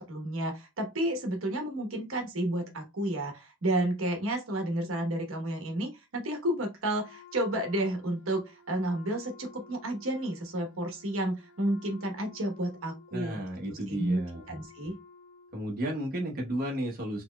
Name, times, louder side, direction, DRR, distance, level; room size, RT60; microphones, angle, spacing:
voice 1, 0.0-13.4 13.7-14.2 14.5-15.0, right 1 dB, 70° right, 1.0 m, -31 dB
Wind instrument woodwind instrument, 6.9-15.8, left 6 dB, 60° left, 1.6 m, -55 dB
voice 2, 13.1-14.4 15.5-17.2, right 1 dB, 45° right, 1.0 m, -33 dB
4.3 x 3.0 x 2.2 m
head